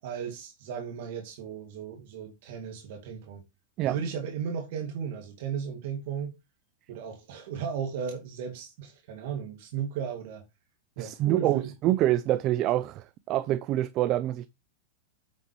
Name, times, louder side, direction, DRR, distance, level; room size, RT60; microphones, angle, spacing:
voice 1, 0.0-3.4 3.8-6.3 6.9-10.4 11.0-11.7, right 7 dB, 65° right, 2.3 m, -35 dB
voice 2, 11.0-14.5, right 14 dB, 40° right, 0.5 m, -26 dB
8.8 x 7.5 x 3.1 m
hypercardioid pair, 125°, 0 cm